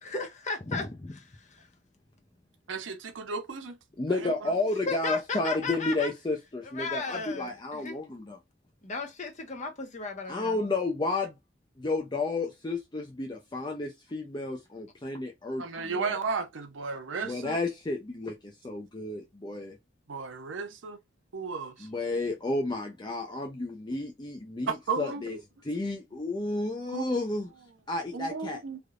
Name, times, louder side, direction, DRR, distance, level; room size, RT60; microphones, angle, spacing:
voice 1, 0.0-0.9 1.1-1.7 4.8-6.1 6.6-8.0 8.8-10.6, left 4 dB, 40° left, 0.9 m, -35 dB
voice 2, 2.7-3.8 4.1-4.5 15.6-17.6 20.1-21.0 21.3-21.9 24.7-25.4 26.9-27.0 28.1-28.8, right 5 dB, 75° right, 0.6 m, -34 dB
voice 3, 4.0-8.4 10.3-11.3 11.8-16.2 17.2-19.8 21.8-25.4 25.6-27.5 27.9-28.6, left 2 dB, 25° left, 0.5 m, -32 dB
3.4 x 2.6 x 2.4 m
head